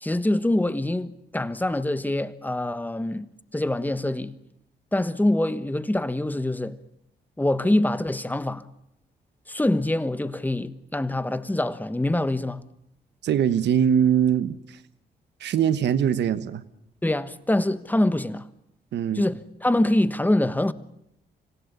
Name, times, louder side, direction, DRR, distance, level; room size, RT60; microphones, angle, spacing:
voice 1, 0.0-4.3 4.9-6.8 7.4-8.7 9.5-12.6 17.0-18.5 19.1-20.7, left 1 dB, 10° left, 1.3 m, -25 dB
voice 2, 13.2-14.8 15.4-16.6 18.9-19.3, right 9 dB, 90° right, 1.3 m, -22 dB
26.5 x 16.5 x 9.9 m
cardioid pair, 90°, 18 cm